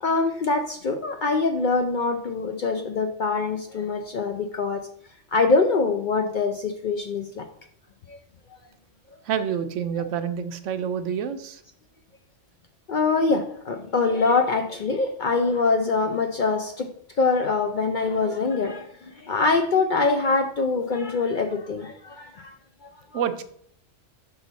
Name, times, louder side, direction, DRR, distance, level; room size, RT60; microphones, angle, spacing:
voice 1, 0.0-4.9 5.3-7.5 8.1-8.2 12.9-16.9 17.2-22.5 23.1-23.2, left 4 dB, 55° left, 6 dB, 0.5 m, -24 dB
voice 2, 9.3-11.6 23.1-23.4, right 8 dB, 80° right, 9 dB, 1.0 m, -28 dB
5.9 x 5.5 x 4.0 m, 0.66 s
omnidirectional pair, 1.3 m